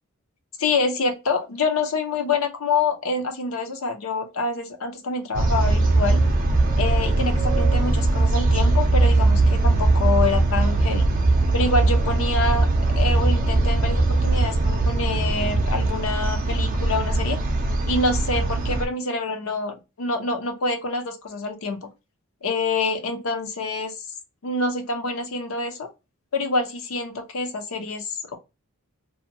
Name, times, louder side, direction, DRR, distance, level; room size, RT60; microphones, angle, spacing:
voice 1, 0.6-6.2 6.8-11.1 11.5-12.7 12.9-17.4 17.9-21.9 22.4-23.9 24.4-25.9 26.3-28.4, left 3 dB, 65° left, 0.6 m, -26 dB
sound 1, 5.3-18.8, right 2 dB, 40° right, 0.5 m, -20 dB
2.7 x 2.1 x 2.7 m
head